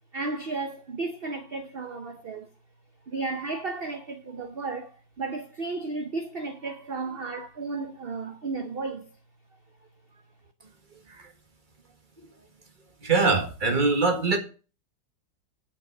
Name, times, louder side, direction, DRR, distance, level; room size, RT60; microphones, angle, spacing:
voice 1, 0.1-2.5 3.1-9.1, right 3 dB, 60° right, 0.6 m, -33 dB
voice 2, 13.0-14.4, right 3 dB, 25° right, 1.6 m, -23 dB
8.9 x 5.3 x 7.2 m
omnidirectional pair, 2.1 m